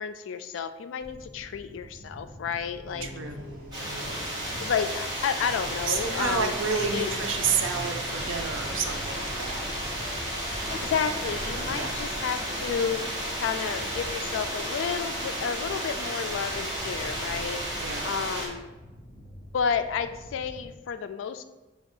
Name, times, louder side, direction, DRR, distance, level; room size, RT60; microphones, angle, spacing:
voice 1, 0.0-3.1 4.6-7.1 10.7-18.7 19.5-21.4, left 6 dB, 85° left, 10 dB, 0.3 m, -31 dB
sound 1, 1.0-20.7, equal, 40° left, 0.6 m, -46 dB
sound 2, 2.9-8.1, equal, 50° right, 1.0 m, -45 dB
voice 2, 3.0-3.4 5.9-9.7 11.7-11.9 17.8-18.1, right 6 dB, 85° right, 5 dB, 0.5 m, -30 dB
sound 3, 3.7-18.5, right 1 dB, 25° right, 1.1 m, -33 dB
4.8 x 2.3 x 4.3 m, 1.1 s
head